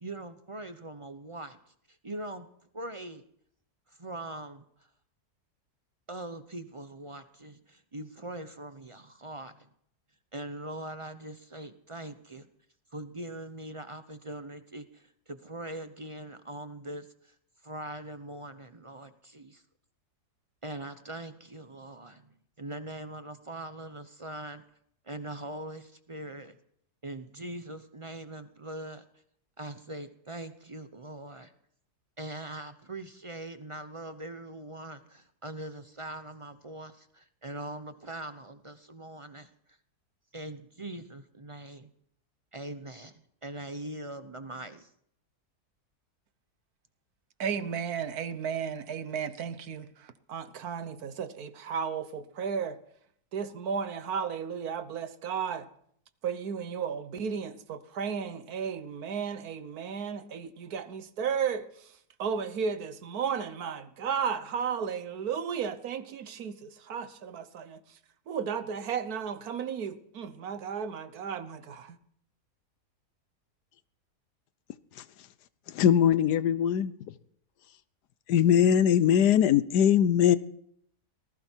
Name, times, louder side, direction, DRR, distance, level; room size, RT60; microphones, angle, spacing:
voice 1, 0.0-1.6 1.9-2.5 2.7-3.2 3.9-4.9 6.1-9.7 10.3-12.5 12.9-17.3 17.6-19.6 20.6-24.6 25.0-26.6 27.0-29.0 29.6-31.5 32.2-39.5 40.3-41.9 42.5-44.9, right 1 dB, 30° right, 0.7 m, -42 dB
voice 2, 47.4-52.8 53.3-55.7 56.2-68.0 68.3-72.0, right 7 dB, 70° right, 1.5 m, -34 dB
voice 3, 75.7-77.1 78.3-80.4, left 9 dB, 90° left, 1.4 m, -22 dB
19.0 x 15.5 x 4.6 m
omnidirectional pair, 1.7 m